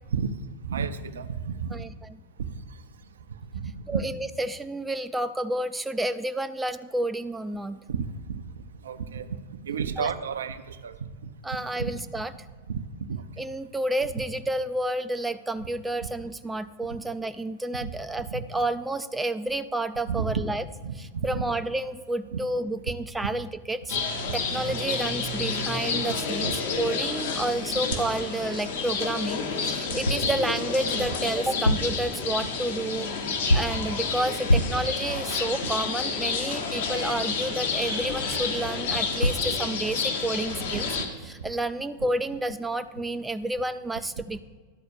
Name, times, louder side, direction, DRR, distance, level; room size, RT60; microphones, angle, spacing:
voice 1, 0.6-1.8 2.4-2.5 3.5-4.0 7.9-8.4 8.8-9.3 9.6-11.0 11.8-11.9 12.7-12.8 13.1-13.5 16.9-17.0 17.8-17.9 18.3-18.4 20.1-20.4 20.8-21.4 22.3-22.4 24.3-24.4 26.4-26.6 31.0-31.1 33.3-33.4 41.4-41.5, right 6 dB, 65° right, 11 dB, 0.5 m, -31 dB
voice 2, 1.7-2.2 3.9-7.8 10.0-10.1 11.4-12.3 13.4-20.6 20.9-24.0 24.3-33.1 33.5-40.9 41.2-44.4, right 1 dB, 10° right, 10 dB, 0.3 m, -30 dB
sound 1, 23.9-41.0, left 4 dB, 60° left, 1.3 m, -30 dB
sound 2, 30.0-30.4 31.5-32.0 33.5-33.9 34.5-34.9 38.9-39.0 39.2-39.5, left 1 dB, 80° left, 0.4 m, -24 dB
11.5 x 4.3 x 6.9 m, 1.4 s
figure-of-eight pair, 90°, 0 cm